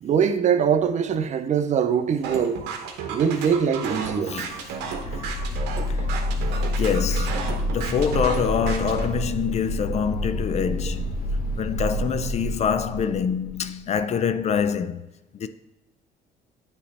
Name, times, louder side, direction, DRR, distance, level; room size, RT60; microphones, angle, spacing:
voice 1, 0.0-2.6 3.1-4.4 6.1-6.7, right 7 dB, 45° right, 0.5 m, -23 dB
sound 1, 2.2-9.1, right 5 dB, 90° right, 1.0 m, -33 dB
voice 2, 4.3-4.6 5.0-5.4 5.8-6.0 6.8-11.2 11.6-15.1 15.4-15.5, left 7 dB, 40° left, 0.4 m, -25 dB
sound 2, 4.6-13.9, equal, 60° left, 1.3 m, -28 dB
8.3 x 3.2 x 4.2 m
cardioid pair, 110°, 17 cm